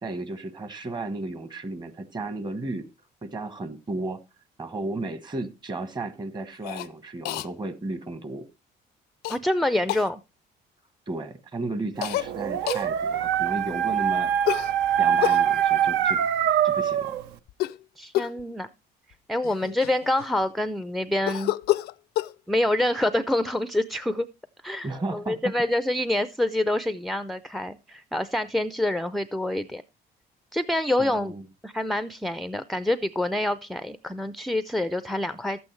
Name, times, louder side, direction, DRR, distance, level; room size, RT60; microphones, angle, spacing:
voice 1, 0.0-2.9 3.2-4.2 4.6-8.5 11.1-14.3 15.0-16.2 16.6-17.2 24.8-25.4 31.0-31.4, right 2 dB, 25° right, 12 dB, 1.2 m, -34 dB
Cough, 6.6-6.9 7.2-7.5 9.2-9.4 9.9-10.1 12.0-12.3 12.7-12.9 14.4-15.4 17.5-17.8 18.1-18.4 19.1-19.2 19.4-20.5 21.3-22.3, left 15 dB, 70° left, 0.4 m, -28 dB
voice 2, 9.3-10.2 18.0-18.7 19.3-21.5 22.5-24.3 24.6-29.8 30.5-31.3 31.6-35.6, left 1 dB, ahead, 13 dB, 0.4 m, -26 dB
Dog, 12.2-17.2, right 9 dB, 85° right, 0.7 m, -24 dB
12.0 x 8.5 x 3.1 m, 0.25 s
cardioid pair, 110°, 17 cm